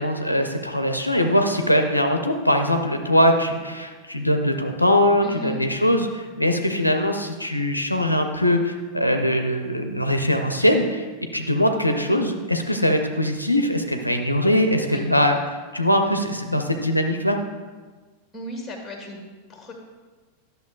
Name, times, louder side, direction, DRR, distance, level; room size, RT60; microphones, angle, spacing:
voice 1, 0.0-11.0 11.3-15.4 15.7-17.4, left 1 dB, 85° left, 5 dB, 0.5 m, -21 dB
voice 2, 5.2-5.6 14.9-15.1 18.3-19.2 19.5-19.7, left 1 dB, 10° left, 1 dB, 1.6 m, -35 dB
11.0 x 6.5 x 2.4 m, 1.4 s
figure-of-eight pair, 90°, 0 cm